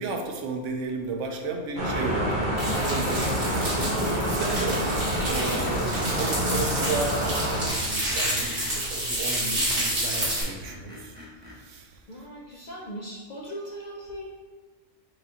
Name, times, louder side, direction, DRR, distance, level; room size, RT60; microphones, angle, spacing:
voice 1, 0.0-12.3, right 3 dB, 80° right, 4 dB, 1.0 m, -34 dB
sound 1, 1.8-7.7, equal, 40° right, 1.3 m, -27 dB
sound 2, 2.6-10.4, right 1 dB, 60° right, 2.0 m, -29 dB
Screech, 4.4-6.3 7.9-8.8 9.4-11.6, left 1 dB, 10° right, 0.9 m, -43 dB
voice 2, 12.1-14.3, equal, 55° left, -2 dB, 0.5 m, -39 dB
4.9 x 3.8 x 2.8 m, 1.4 s
omnidirectional pair, 1.3 m